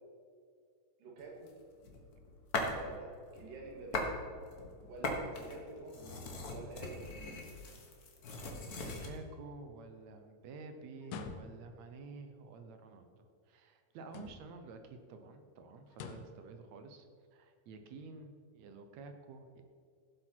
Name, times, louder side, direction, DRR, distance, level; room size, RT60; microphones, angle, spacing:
voice 1, 1.0-1.5 2.7-4.1 4.9-6.2 6.5-7.3, right 3 dB, 85° right, 0 dB, 3.6 m, -48 dB
sound 1, 1.5-2.9 3.3-4.2 4.5-9.2, left 2 dB, 55° left, 1.0 m, -40 dB
voice 2, 8.8-17.1 17.3-19.6, right 4 dB, 70° right, 7 dB, 1.9 m, -51 dB
sound 2, 11.0-11.8 14.0-14.7 15.9-16.4, left 5 dB, 80° left, 2.5 m, -46 dB
15.5 x 7.8 x 4.5 m, 2.2 s
omnidirectional pair, 3.8 m